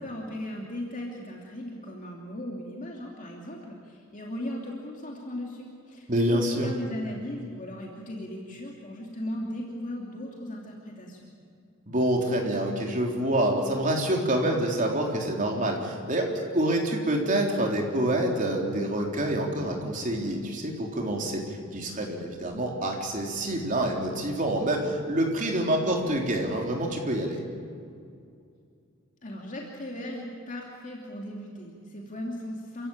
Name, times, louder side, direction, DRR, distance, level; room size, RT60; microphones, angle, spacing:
voice 1, 0.0-11.3 29.2-32.9, left 1 dB, 40° left, -2 dB, 2.8 m, -37 dB
voice 2, 6.1-6.7 11.9-27.4, right 1 dB, 40° right, 0 dB, 3.8 m, -27 dB
28.5 x 15.5 x 8.9 m, 2.4 s
head